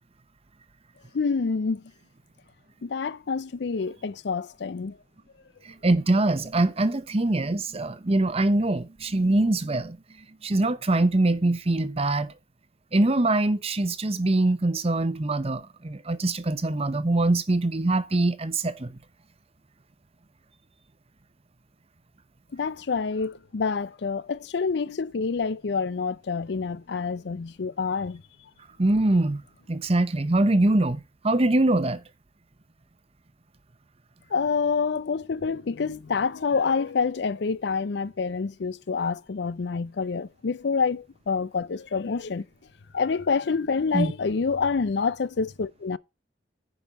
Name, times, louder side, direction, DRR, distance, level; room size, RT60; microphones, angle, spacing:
voice 1, 1.1-1.8 2.8-5.0 22.5-28.2 34.3-42.4 42.9-46.0, left 5 dB, 65° left, 0.5 m, -27 dB
voice 2, 5.6-10.0 10.4-12.3 12.9-18.9 28.8-29.4 29.7-32.0 43.9-44.1, right 2 dB, 35° right, 0.8 m, -23 dB
10.0 x 5.4 x 5.3 m
head